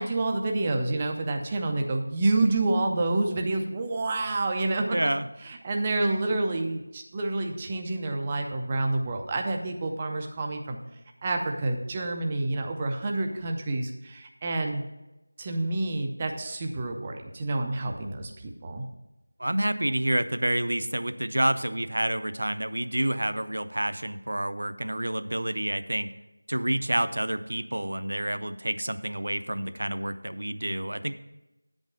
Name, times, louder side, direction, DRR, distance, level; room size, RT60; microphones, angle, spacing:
voice 1, 0.0-5.0 5.4-10.8 11.2-14.8 15.4-18.8, right 2 dB, 10° right, 3 dB, 0.3 m, -28 dB
voice 2, 4.9-5.3 19.4-26.1 26.5-31.2, right 1 dB, 65° right, 12 dB, 0.5 m, -28 dB
8.2 x 5.4 x 6.1 m, 0.98 s
figure-of-eight pair, 180°, 0 cm